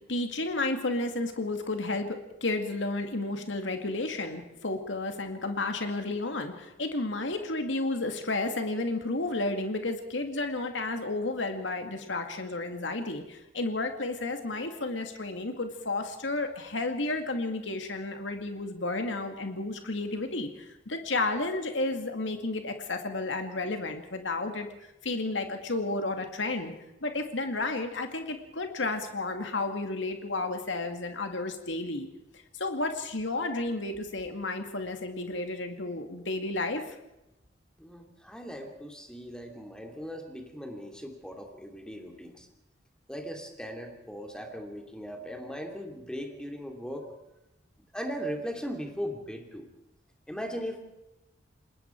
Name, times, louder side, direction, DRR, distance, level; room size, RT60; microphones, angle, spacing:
voice 1, 0.1-24.7 25.0-26.7 27.0-32.1 32.5-37.0, left 2 dB, 85° left, 5 dB, 2.3 m, -32 dB
voice 2, 37.8-42.5 43.1-47.1 47.9-49.7 50.3-50.8, equal, 5° left, 3 dB, 3.0 m, -38 dB
28.5 x 20.5 x 4.7 m, 0.91 s
head